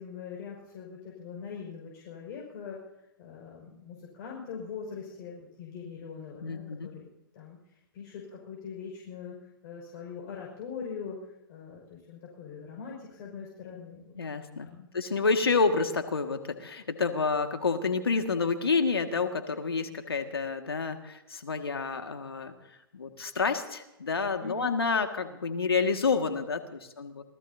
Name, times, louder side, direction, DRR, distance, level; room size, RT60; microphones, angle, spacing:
voice 1, 0.0-9.4 9.6-14.2 14.6-14.9 24.4-24.7, left 6 dB, 45° left, -2 dB, 5.7 m, -42 dB
voice 2, 6.4-6.9 14.2-14.7 14.9-22.5 22.9-27.2, left 4 dB, 80° left, 6 dB, 2.0 m, -29 dB
27.0 x 18.5 x 2.8 m, 0.90 s
figure-of-eight pair, 110°, 12 cm